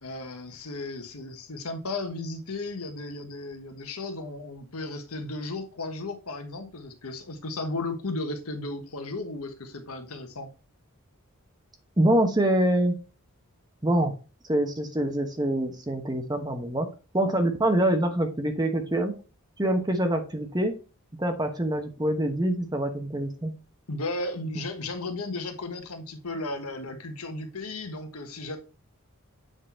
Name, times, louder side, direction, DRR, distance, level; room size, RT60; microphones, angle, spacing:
voice 1, 0.0-10.5 23.9-28.6, left 2 dB, 85° left, 1.3 m, -35 dB
voice 2, 12.0-12.9 13.8-14.1 14.5-16.9 17.1-19.1 19.6-20.7 21.2-23.5, right 1 dB, 20° right, 1.0 m, -25 dB
7.9 x 4.0 x 4.3 m
head